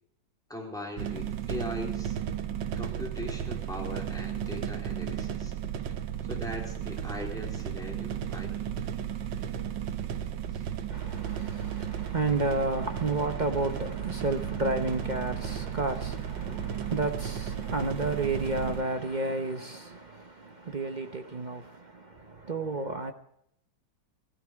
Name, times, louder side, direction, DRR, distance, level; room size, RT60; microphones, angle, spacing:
voice 1, 0.5-2.2 2.8-5.6 6.2-8.8 10.5-10.7 16.5-16.6, left 1 dB, ahead, 3.9 m, -40 dB
sound 1, 1.0-18.8, right 9 dB, 65° right, 1.5 m, -34 dB
voice 2, 10.9-23.1, right 3 dB, 50° right, 0.5 m, -31 dB
17.0 x 14.5 x 4.7 m
omnidirectional pair, 2.2 m